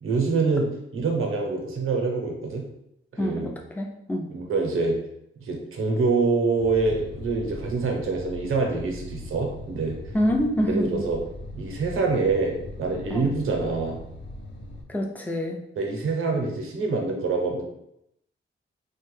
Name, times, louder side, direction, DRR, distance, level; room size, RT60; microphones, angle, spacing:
voice 1, 0.0-2.6 3.1-3.5 4.3-5.0 5.4-10.0 10.7-11.2 11.5-14.0 15.8-17.6, right 3 dB, 80° right, 1 dB, 0.7 m, -25 dB
voice 2, 3.2-4.3 10.1-10.9 13.1-13.3 14.9-15.6, equal, 10° left, 1 dB, 0.4 m, -26 dB
sound 1, 6.6-14.8, left 1 dB, 60° left, 0.6 m, -40 dB
2.9 x 2.2 x 3.1 m, 0.78 s
wide cardioid pair, 130°, 21 cm